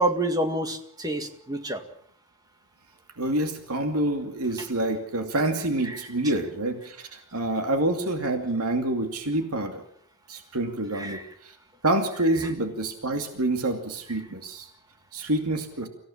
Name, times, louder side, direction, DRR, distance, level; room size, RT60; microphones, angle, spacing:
voice 1, 0.0-1.8 11.0-11.2, right 1 dB, 15° right, 6 dB, 2.0 m, -27 dB
voice 2, 3.2-9.8 10.3-11.6 11.8-14.7 15.1-15.9, right 1 dB, 85° right, 5 dB, 2.5 m, -27 dB
25.0 x 16.0 x 7.3 m, 0.65 s
head